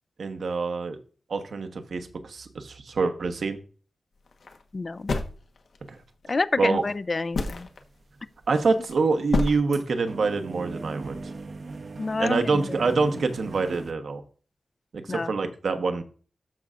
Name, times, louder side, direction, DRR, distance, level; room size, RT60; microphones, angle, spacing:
voice 1, 0.2-1.0 1.3-3.6 5.9-6.0 6.3-6.8 8.5-11.2 12.2-14.2 14.9-16.0, right 4 dB, 75° right, 1.1 m, -26 dB
sound 1, 4.3-4.6 5.1-5.9 6.8-6.9 7.3-7.8 8.6-8.9 9.3-9.6, left 3 dB, 80° left, 1.2 m, -27 dB
voice 2, 4.7-5.1 6.3-7.7 12.0-12.6 15.1-15.3, left 3 dB, 40° left, 0.4 m, -28 dB
sound 2, 7.4-7.8 8.1-13.9, right 3 dB, 55° right, 0.8 m, -39 dB
13.5 x 5.6 x 2.5 m
wide cardioid pair, 120°, 0 cm